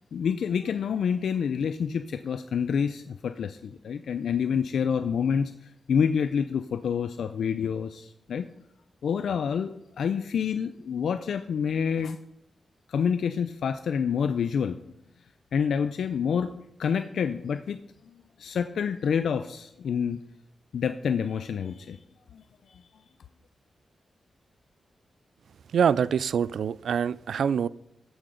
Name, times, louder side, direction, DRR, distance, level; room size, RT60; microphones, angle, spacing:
voice 1, 0.1-8.5 9.0-9.7 10.0-12.2 12.9-14.8 15.5-16.5 16.8-17.8 18.1-20.2 20.7-22.0 22.3-22.4 22.7-22.8, left 7 dB, 85° left, 10 dB, 0.4 m, -28 dB
voice 2, 25.7-27.7, right 7 dB, 80° right, 19 dB, 0.3 m, -25 dB
14.0 x 6.2 x 5.1 m, 0.78 s
wide cardioid pair, 165°, 0 cm